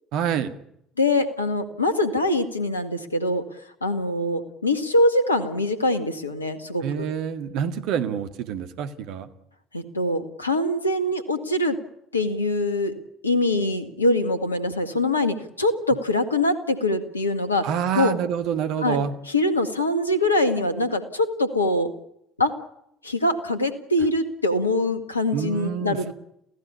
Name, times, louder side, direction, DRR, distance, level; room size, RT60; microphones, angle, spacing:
voice 1, 0.1-0.5 6.8-9.3 17.6-19.1 25.3-26.1, right 8 dB, 60° right, 9 dB, 2.0 m, -27 dB
voice 2, 1.0-3.4 3.8-7.1 9.7-11.8 12.1-12.9 13.2-17.7 17.9-18.2 18.8-19.0 19.3-21.9 22.4-22.5 23.0-26.1, left 1 dB, 90° left, 9 dB, 1.9 m, -23 dB
28.5 x 16.5 x 8.6 m, 0.75 s
figure-of-eight pair, 60°, 0 cm